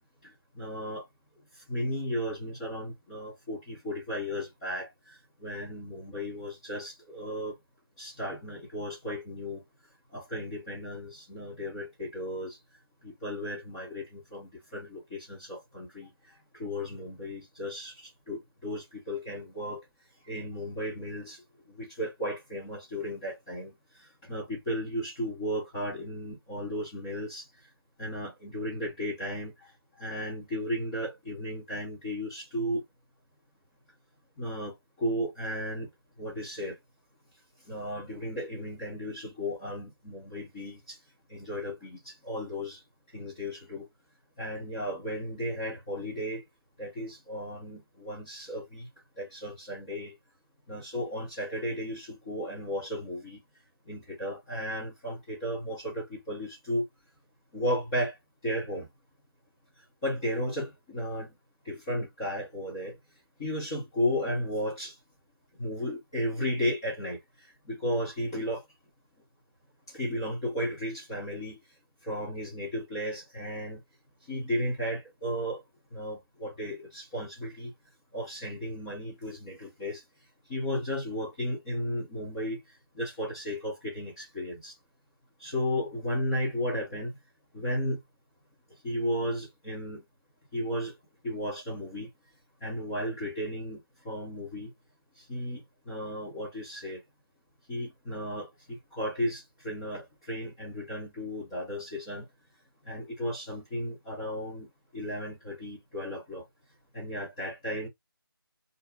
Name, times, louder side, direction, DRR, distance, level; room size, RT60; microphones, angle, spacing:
voice 1, 0.2-1.0 1.7-7.6 8.0-9.6 10.1-12.6 13.0-16.1 16.5-19.8 20.3-21.4 21.7-27.5 28.0-29.7 30.0-32.8 34.4-35.9 36.2-36.8 37.6-41.0 41.3-42.8 43.1-43.9 44.4-46.4 46.8-48.9 49.2-50.1 50.7-53.4 53.9-56.9 57.5-58.2 58.4-58.9 60.0-61.3 61.6-63.0 63.4-65.0 65.6-68.6 69.9-71.6 72.0-73.8 74.3-75.6 75.9-77.7 78.1-80.0 80.5-82.6 82.9-84.7 85.4-87.1 87.5-88.0 88.8-90.0 90.5-91.0 91.2-92.1 92.6-94.7 95.2-97.0 97.7-102.3 102.9-104.7 104.9-106.4 106.9-107.9, equal, 10° left, 0.7 m, -34 dB
2.5 x 2.2 x 3.9 m
figure-of-eight pair, 155°, 13 cm